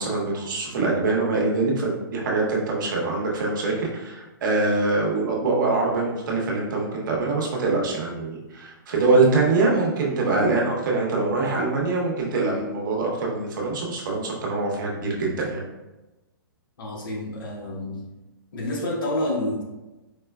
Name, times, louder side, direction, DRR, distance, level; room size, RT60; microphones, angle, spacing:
voice 1, 0.0-15.6, right 3 dB, 60° right, -2 dB, 0.9 m, -24 dB
voice 2, 16.8-18.1 18.5-19.6, left 1 dB, 70° left, -1 dB, 0.9 m, -28 dB
4.3 x 2.2 x 2.2 m, 1.1 s
hypercardioid pair, 150°, 12 cm